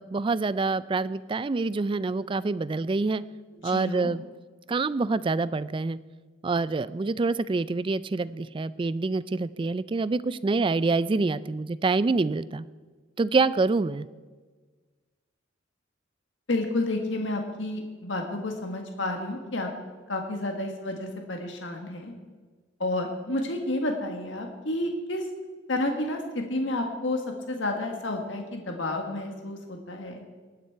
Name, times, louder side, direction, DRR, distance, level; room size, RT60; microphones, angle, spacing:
voice 1, 0.0-3.2 3.6-4.2 4.7-6.0 6.4-12.6 13.2-14.1, right 3 dB, 25° right, 17 dB, 0.3 m, -26 dB
voice 2, 3.6-4.1 16.5-19.7 20.1-22.1 22.8-25.3 25.7-27.2 27.5-30.2, left 2 dB, 65° left, 3 dB, 1.5 m, -30 dB
19.0 x 9.4 x 4.6 m, 1.4 s
head